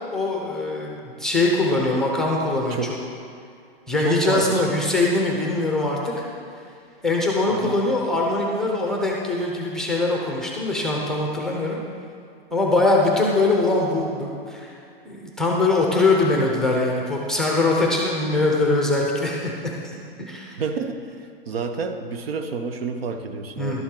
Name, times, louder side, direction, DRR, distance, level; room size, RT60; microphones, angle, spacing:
voice 1, 0.1-3.1 3.9-6.2 7.0-11.8 12.5-14.8 15.0-20.6 23.6-23.8, left 2 dB, ahead, -1 dB, 0.6 m, -22 dB
voice 2, 4.0-4.6 7.6-7.8 20.6-21.2 21.5-23.8, right 4 dB, 75° right, 7 dB, 0.9 m, -29 dB
11.5 x 7.1 x 3.8 m, 2.4 s
hypercardioid pair, 150°, 30 cm